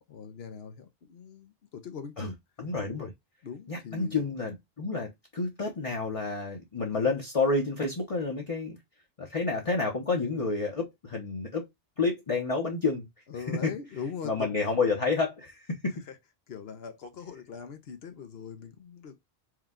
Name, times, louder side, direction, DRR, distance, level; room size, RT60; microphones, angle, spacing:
voice 1, 0.0-2.4 3.0-3.1 3.4-4.2 6.9-7.1 10.3-10.4 13.3-14.5 16.1-16.2 16.5-19.2, left 6 dB, 75° left, 1.0 m, -41 dB
voice 2, 2.6-3.1 3.7-8.8 9.2-11.7 12.0-13.1 13.6-13.7 14.2-16.0, left 3 dB, 35° left, 0.8 m, -29 dB
4.6 x 2.3 x 3.6 m
omnidirectional pair, 1.1 m